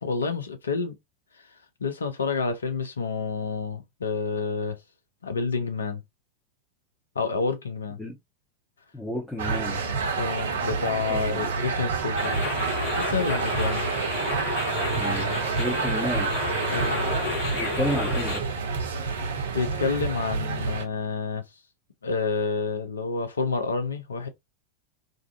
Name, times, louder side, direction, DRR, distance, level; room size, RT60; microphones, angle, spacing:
voice 1, 0.0-1.0 1.4-1.5 1.8-4.8 5.2-6.0 7.2-8.0 10.2-12.3 13.0-13.8 16.7-17.0 19.5-21.5 22.0-24.3, left 4 dB, 70° left, 0.5 m, -29 dB
voice 2, 8.9-9.8 11.1-11.5 15.0-15.3 15.6-16.3 17.5-18.4, left 1 dB, 10° left, 0.7 m, -31 dB
sound 1, 9.4-20.8, right 4 dB, 60° right, 0.5 m, -28 dB
sound 2, 12.2-18.4, left 3 dB, 50° left, 1.4 m, -31 dB
2.5 x 2.4 x 2.3 m
figure-of-eight pair, 90°, 0 cm